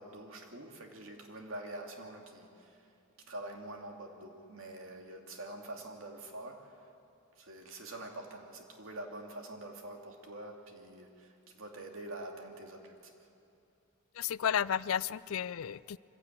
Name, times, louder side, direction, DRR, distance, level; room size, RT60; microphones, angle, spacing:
voice 1, 0.0-2.9 3.3-6.9 7.4-13.1, right 1 dB, 75° right, 3 dB, 2.5 m, -46 dB
voice 2, 14.2-16.0, left 8 dB, 85° left, 19 dB, 0.4 m, -32 dB
24.0 x 16.0 x 9.0 m, 2.7 s
head